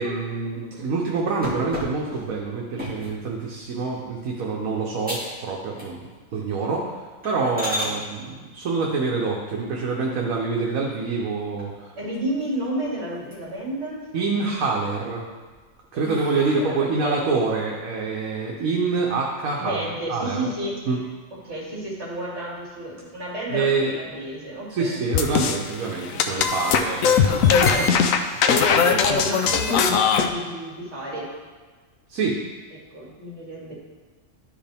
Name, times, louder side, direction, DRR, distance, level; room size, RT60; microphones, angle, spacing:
voice 1, 0.0-6.0 6.3-12.0 14.1-15.2 15.9-20.5 20.9-21.0 23.5-23.9 24.7-27.9 28.3-28.5 32.1-32.4, right 4 dB, 85° right, -2 dB, 1.3 m, -26 dB
sound 1, 1.4-3.2 3.8-4.1 4.5-4.6 5.0-5.4 5.7-6.2 6.6-6.7 7.2-7.9 9.9-10.6 11.1-11.2 11.6-11.7 12.0-12.8 13.1-13.7 14.1-14.8 15.3-17.0, left 1 dB, 5° right, 2.1 m, -35 dB
voice 2, 12.0-14.1 15.9-17.2 19.6-20.7 21.4-25.0 27.4-27.9 28.4-31.3 32.9-33.7, right 1 dB, 55° right, -6 dB, 2.8 m, -31 dB
sound 2, 25.1-25.6 26.1-30.3, left 6 dB, 80° left, 1.0 m, -19 dB
12.0 x 5.2 x 3.5 m, 1.4 s
omnidirectional pair, 1.4 m